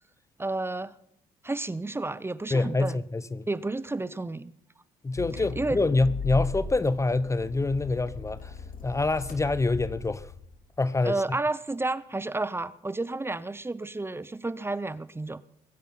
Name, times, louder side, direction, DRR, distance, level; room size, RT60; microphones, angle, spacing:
voice 1, 0.4-1.0 1.4-3.0 3.5-4.5 5.3-5.8 11.0-15.4, right 2 dB, 15° right, 0.8 m, -31 dB
voice 2, 2.5-3.5 5.0-8.5 8.8-10.3 10.8-11.2, left 3 dB, 20° left, 0.7 m, -26 dB
Accelerating revving vroom, 5.2-10.6, left 4 dB, 60° left, 2.8 m, -37 dB
22.0 x 9.4 x 5.8 m
supercardioid pair, 75°, 16 cm